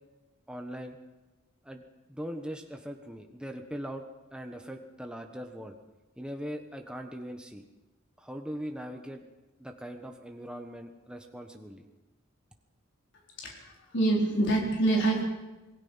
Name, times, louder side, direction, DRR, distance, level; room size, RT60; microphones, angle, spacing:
voice 1, 0.5-1.0 1.6-1.8 2.1-4.0 4.3-5.8 6.2-7.6 8.2-9.2 9.6-11.8, equal, 5° right, 3 dB, 1.3 m, -40 dB
voice 2, 13.4-15.2, right 2 dB, 60° left, -1 dB, 4.5 m, -26 dB
26.5 x 20.0 x 5.8 m, 1.1 s
head